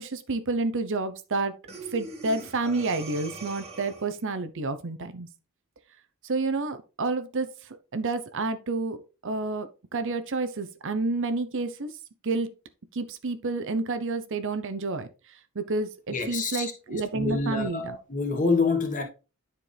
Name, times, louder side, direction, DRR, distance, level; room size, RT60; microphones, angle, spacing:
voice 1, 0.0-1.5 1.9-5.3 6.2-7.5 7.9-9.0 9.2-11.9 12.2-12.5 12.9-15.1 15.5-18.0, right 3 dB, 60° right, 0.7 m, -29 dB
Breathing, 1.7-4.2, right 3 dB, 30° right, 1.6 m, -41 dB
voice 2, 16.1-19.0, left 4 dB, 35° left, 1.5 m, -27 dB
10.0 x 4.4 x 3.4 m
head